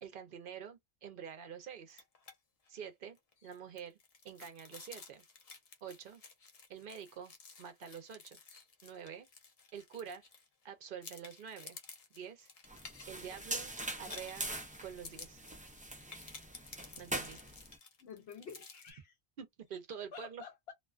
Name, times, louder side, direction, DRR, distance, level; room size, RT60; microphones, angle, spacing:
voice 1, 0.0-2.0 2.7-3.2 3.4-4.0 4.2-5.2 5.8-6.2 6.7-7.3 7.6-8.4 8.8-9.3 9.7-10.2 10.6-11.8 12.1-12.5 13.1-13.7 14.0-14.5 14.8-15.4 17.0-17.4 19.4-20.4, right 7 dB, 60° right, 0.7 m, -47 dB
sound 1, 1.9-2.4 2.7-2.8 3.2-10.6 11.0-18.9, left 4 dB, 45° left, 0.6 m, -54 dB
sound 2, 12.7-17.8, right 1 dB, 15° right, 0.3 m, -43 dB
voice 2, 18.0-19.2 20.1-20.7, left 6 dB, 80° left, 0.9 m, -50 dB
2.4 x 2.2 x 2.3 m
omnidirectional pair, 1.1 m